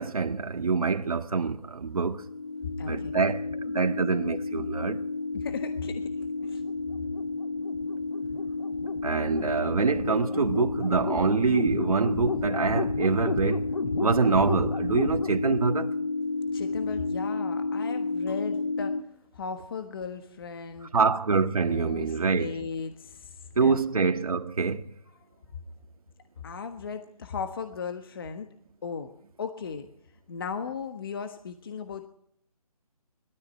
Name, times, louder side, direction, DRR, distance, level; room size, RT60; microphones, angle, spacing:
voice 1, 0.0-2.2 2.8-5.0 9.0-13.7 14.0-16.0 20.9-22.7 23.6-24.9, right 4 dB, 65° right, 1.8 m, -25 dB
sound 1, 2.1-19.0, left 3 dB, 60° left, 2.3 m, -31 dB
voice 2, 2.6-3.2 5.3-6.6 16.5-19.0 19.3-20.9 21.7-23.8 26.4-28.5 28.8-29.1 29.4-29.9 30.3-32.1, left 6 dB, 35° left, 1.4 m, -37 dB
21.5 x 13.5 x 9.0 m
hypercardioid pair, 165°, 20 cm